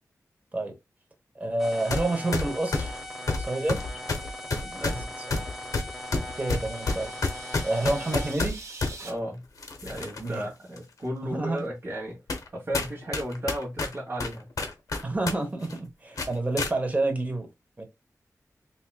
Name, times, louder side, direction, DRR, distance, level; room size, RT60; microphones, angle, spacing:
voice 1, 1.3-3.0 3.4-3.8 4.7-5.0 6.4-7.1 7.6-8.6 10.2-10.5 11.3-11.6 15.0-17.5 17.8-17.9, right 2 dB, 25° right, 1.1 m, -28 dB
sound 1, 1.6-8.3, left 1 dB, 5° right, 1.0 m, -39 dB
sound 2, 1.9-2.1 2.3-9.0 9.6-10.3 10.8-10.9 11.6-11.7 12.3-12.5 12.7-15.4 15.6-15.8 16.2-16.7, left 3 dB, 70° left, 0.8 m, -29 dB
voice 2, 4.4-5.1 9.0-9.4 9.8-12.2 12.5-14.5, equal, 40° right, 1.4 m, -34 dB
sound 3, 5.0-9.1, right 3 dB, 60° right, 1.4 m, -47 dB
4.5 x 2.8 x 2.3 m
wide cardioid pair, 115°, 6 cm